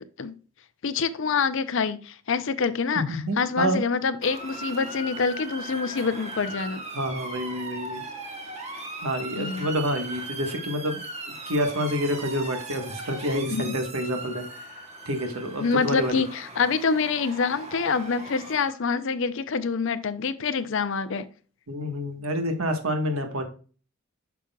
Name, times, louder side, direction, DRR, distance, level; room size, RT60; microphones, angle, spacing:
voice 1, 0.8-6.8 9.4-9.7 13.5-13.8 15.6-21.3, left 5 dB, 55° left, 0.5 m, -26 dB
voice 2, 2.9-3.8 6.9-8.0 9.0-11.0 11.3-16.2 21.7-23.4, equal, 75° right, 1.3 m, -28 dB
Motor vehicle (road) / Siren, 4.2-18.7, right 2 dB, 30° right, 1.1 m, -38 dB
8.3 x 6.0 x 2.3 m
head